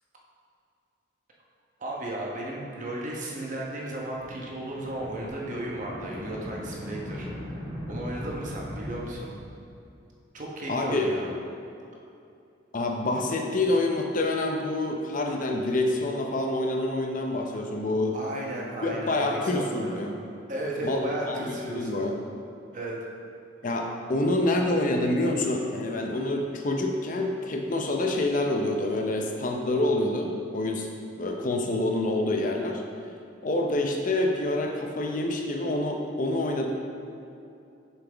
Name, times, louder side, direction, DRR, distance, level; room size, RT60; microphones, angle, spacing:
voice 1, 1.8-7.3 7.9-9.3 10.3-11.3 18.1-20.1 20.5-22.0 22.7-23.0, right 1 dB, 40° right, -3 dB, 1.1 m, -34 dB
sound 1, 4.1-10.0, equal, 20° right, 1.2 m, -39 dB
voice 2, 10.7-11.1 12.7-18.1 18.8-20.1 20.8-22.1 23.6-30.9 31.2-32.8 33.4-36.7, left 2 dB, 40° left, 2 dB, 0.6 m, -27 dB
7.0 x 5.5 x 3.4 m, 2.6 s
head